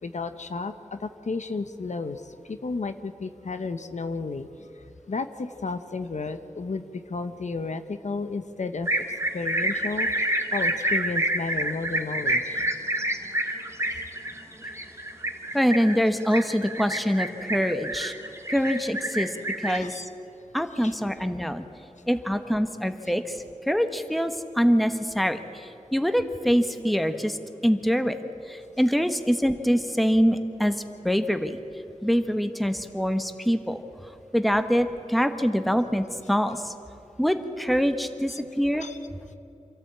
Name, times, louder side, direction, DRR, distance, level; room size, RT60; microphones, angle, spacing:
voice 1, 0.0-9.1 9.3-12.7 19.7-20.1 20.8-20.9 38.3-38.4 38.8-39.0, left 4 dB, 70° left, 9 dB, 0.9 m, -33 dB
sound 1, 8.9-19.8, right 1 dB, 20° right, 1.8 m, -28 dB
voice 2, 15.5-18.1 18.5-19.3 19.6-20.0 20.5-21.6 22.1-23.4 23.7-27.4 27.6-28.2 28.5-30.7 31.0-31.6 32.0-33.8 34.3-36.7 37.2-38.9, equal, ahead, 8 dB, 1.3 m, -24 dB
26.5 x 13.5 x 8.7 m, 2.8 s
wide cardioid pair, 60°, 13 cm